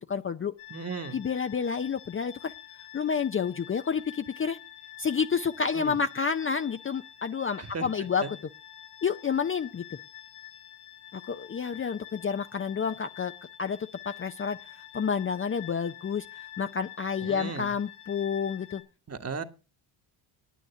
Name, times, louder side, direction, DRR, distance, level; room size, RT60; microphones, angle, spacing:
voice 1, 0.1-0.5 1.1-2.5 2.9-4.6 5.0-8.2 9.0-9.8 11.1-13.3 13.6-13.8 14.1-18.8, left 6 dB, 25° left, 8 dB, 0.6 m, -29 dB
sound 1, 0.6-18.8, left 12 dB, 85° left, 5.3 m, -47 dB
voice 2, 0.7-1.2 5.7-6.0 7.6-7.9 8.2-8.3 17.2-17.7 19.1-19.4, right 5 dB, 30° right, 7 dB, 1.6 m, -36 dB
9.3 x 9.1 x 6.9 m, 0.33 s
supercardioid pair, 65°, 50 cm